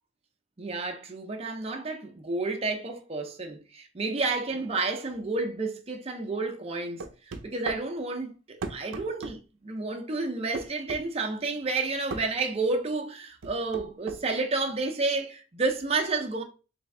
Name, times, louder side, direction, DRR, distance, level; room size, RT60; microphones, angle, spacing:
voice 1, 0.6-7.0 7.4-16.4, right 3 dB, 30° right, 0.5 m, -30 dB
sound 1, 7.0-7.8 8.6-9.4 10.5-11.0 12.1-12.3 13.4-14.2, right 3 dB, 85° right, 0.5 m, -35 dB
3.3 x 3.1 x 3.6 m
head